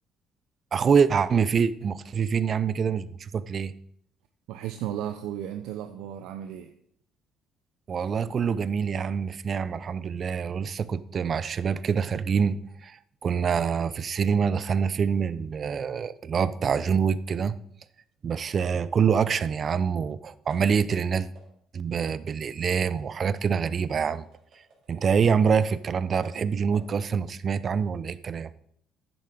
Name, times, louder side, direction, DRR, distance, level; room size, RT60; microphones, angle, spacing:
voice 1, 0.7-3.7 7.9-17.6 18.2-21.3 21.7-24.3 24.9-28.5, right 6 dB, 40° right, 0.5 m, -25 dB
voice 2, 4.5-6.7, right 11 dB, 85° right, 0.6 m, -34 dB
sound 1, 19.7-20.1 20.5-20.9 21.3-21.6 22.0-25.9 26.2-27.0, right 3 dB, 65° right, 3.3 m, -53 dB
10.0 x 7.0 x 5.0 m
cardioid pair, 105°, 0 cm